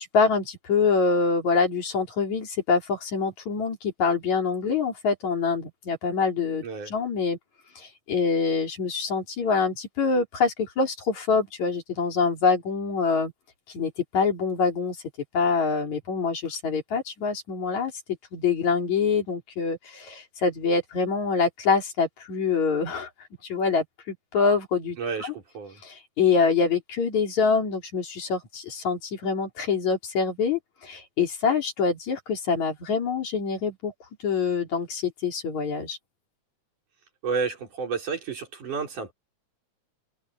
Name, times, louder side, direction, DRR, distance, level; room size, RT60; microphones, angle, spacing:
voice 1, 0.0-7.4 7.8-13.3 13.7-15.0 15.3-17.9 18.3-23.1 23.4-25.3 25.8-33.9 34.2-36.0, left 5 dB, 65° left, 4.9 m, -25 dB
voice 2, 25.0-25.8 37.2-39.1, right 5 dB, 80° right, 6.0 m, -31 dB
open air
omnidirectional pair, 3.5 m